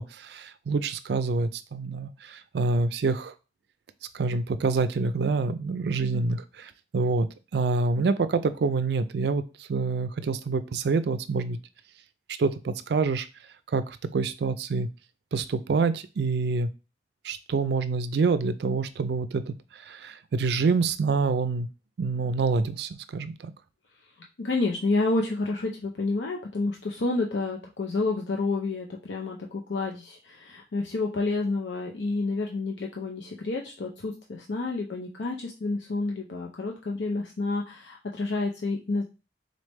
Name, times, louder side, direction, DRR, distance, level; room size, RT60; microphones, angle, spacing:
voice 1, 0.0-3.3 4.1-7.3 7.5-11.6 12.4-13.3 13.7-14.9 15.3-16.7 17.2-19.5 19.9-21.7 22.0-23.3, right 4 dB, 65° right, 13 dB, 0.4 m, -26 dB
voice 2, 24.4-39.1, left 3 dB, 85° left, 0 dB, 0.6 m, -29 dB
4.0 x 3.3 x 3.1 m, 0.30 s
head